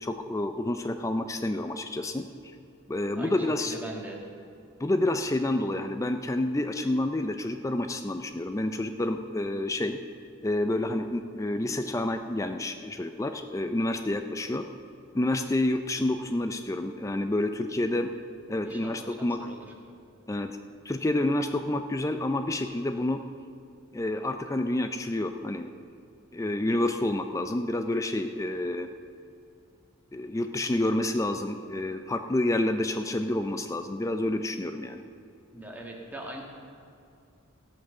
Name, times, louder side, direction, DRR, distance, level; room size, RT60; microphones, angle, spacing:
voice 1, 0.0-2.3 2.9-3.8 4.8-10.0 10.4-14.6 15.1-18.1 18.5-19.4 20.3-20.6 20.9-23.2 23.9-25.9 26.3-28.9 30.1-35.0, left 1 dB, 15° left, 7 dB, 0.4 m, -29 dB
voice 2, 3.1-4.2 18.6-19.7 35.5-36.4, right 1 dB, 10° right, -1 dB, 1.6 m, -41 dB
17.0 x 6.0 x 6.5 m, 2.4 s
head